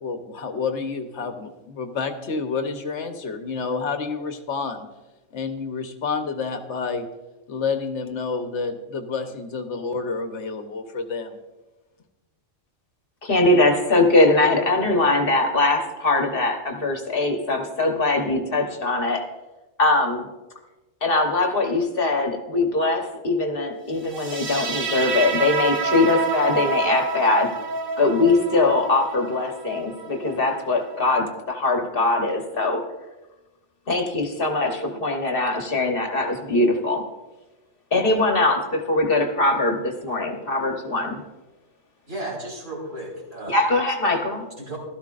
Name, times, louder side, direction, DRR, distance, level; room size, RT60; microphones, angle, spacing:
voice 1, 0.0-4.9 5.3-7.0 7.5-11.4, left 4 dB, 65° left, 7 dB, 1.2 m, -29 dB
voice 2, 13.2-19.2 19.8-20.3 21.0-27.5 28.0-32.8 33.9-37.0 37.9-41.2 43.5-44.4, left 2 dB, 50° left, 4 dB, 1.3 m, -21 dB
sound 1, 24.1-31.1, right 4 dB, 45° right, 1.1 m, -28 dB
voice 3, 42.1-43.6 44.6-44.8, right 1 dB, 85° right, -5 dB, 4.7 m, -34 dB
16.0 x 12.5 x 2.5 m, 1.1 s
omnidirectional pair, 1.3 m